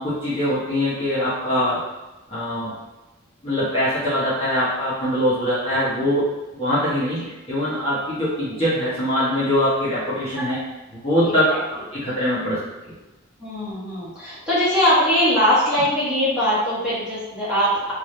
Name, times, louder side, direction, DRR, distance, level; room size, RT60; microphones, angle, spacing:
voice 1, 0.0-1.8 2.3-2.7 3.4-6.3 6.6-10.6 11.0-12.6, equal, 25° left, -11 dB, 1.0 m, -22 dB
voice 2, 11.2-11.6 12.6-12.7 13.4-17.9, equal, 5° right, -12 dB, 1.3 m, -21 dB
3.4 x 2.7 x 3.2 m, 1.1 s
head